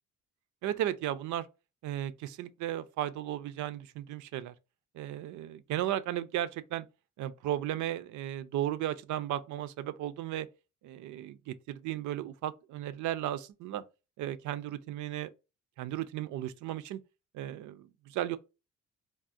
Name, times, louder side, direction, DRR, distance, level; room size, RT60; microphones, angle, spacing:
voice 1, 0.6-1.5 1.8-4.5 4.9-6.9 7.2-10.5 10.8-13.8 14.2-15.3 15.8-17.0 17.3-18.4, right 12 dB, 75° right, 0.5 m, -35 dB
3.5 x 2.1 x 2.5 m
cardioid pair, 90°, 30 cm